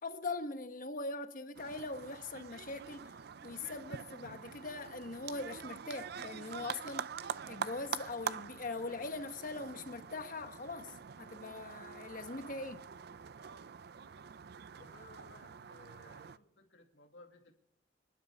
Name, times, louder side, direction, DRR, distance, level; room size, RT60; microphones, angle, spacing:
voice 1, 0.0-3.1 3.4-7.1 7.5-12.8, left 3 dB, 45° left, 1.2 m, -41 dB
sound 1, 1.5-16.4, right 7 dB, 60° right, 0.5 m, -45 dB
voice 2, 14.7-17.5, left 2 dB, 85° left, 2.3 m, -59 dB
26.5 x 12.0 x 3.5 m
head